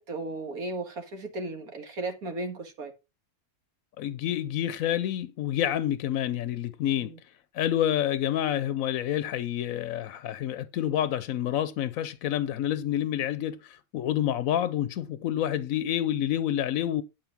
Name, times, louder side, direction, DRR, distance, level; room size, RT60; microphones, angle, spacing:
voice 1, 0.0-2.9 6.9-7.2, right 2 dB, 75° right, 2.3 m, -35 dB
voice 2, 4.0-7.1 7.5-17.0, left 11 dB, 70° left, 1.0 m, -28 dB
11.5 x 5.0 x 5.9 m
omnidirectional pair, 1.6 m